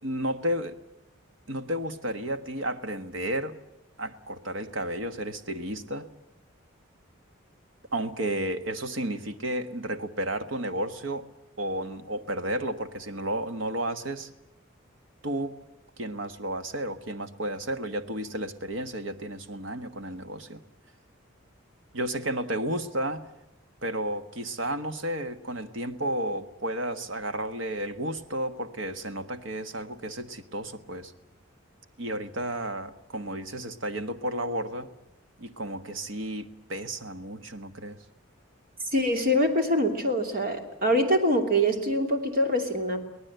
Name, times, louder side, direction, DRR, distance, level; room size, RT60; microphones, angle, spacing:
voice 1, 0.0-0.7 1.5-3.6 4.0-6.1 7.9-11.2 11.6-14.3 15.2-15.5 16.0-20.6 21.9-23.2 23.8-31.1 32.0-34.9 35.4-38.0, right 1 dB, 65° right, 10 dB, 1.5 m, -32 dB
voice 2, 38.9-43.0, equal, 45° right, 5 dB, 2.9 m, -24 dB
24.0 x 18.5 x 8.0 m, 0.89 s
head